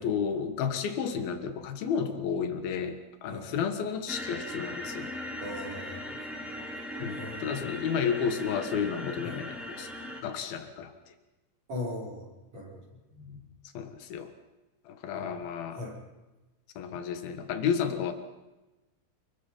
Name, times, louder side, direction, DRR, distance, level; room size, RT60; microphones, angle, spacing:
voice 1, 0.0-5.1 7.0-9.9 10.2-10.9 13.8-14.3 14.9-15.8 16.8-18.1, left 7 dB, 85° left, 7 dB, 3.5 m, -32 dB
sound 1, 4.1-10.2, left 1 dB, ahead, 4.2 m, -39 dB
voice 2, 5.4-6.0 7.1-7.7 9.2-9.4 11.7-12.8 13.1-13.4 15.1-15.4 15.7-16.0, left 1 dB, 45° right, -2 dB, 7.0 m, -40 dB
29.0 x 22.5 x 5.6 m, 1.1 s
omnidirectional pair, 4.2 m